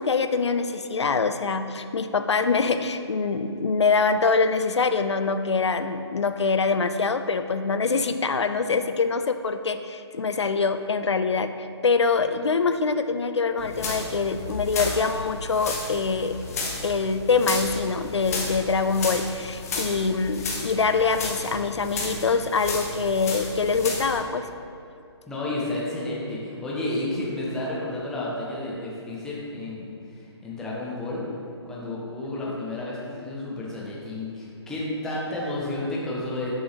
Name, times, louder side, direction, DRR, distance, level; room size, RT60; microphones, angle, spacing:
voice 1, 0.0-11.5 11.8-16.3 16.8-24.5, left 4 dB, 70° left, 9 dB, 0.4 m, -24 dB
sound 1, 13.6-24.2, left 3 dB, 35° left, 0.8 m, -33 dB
voice 2, 25.3-31.2 31.6-36.5, left 2 dB, 5° left, -6 dB, 0.6 m, -31 dB
6.2 x 5.4 x 3.0 m, 2.6 s
figure-of-eight pair, 140°, 15 cm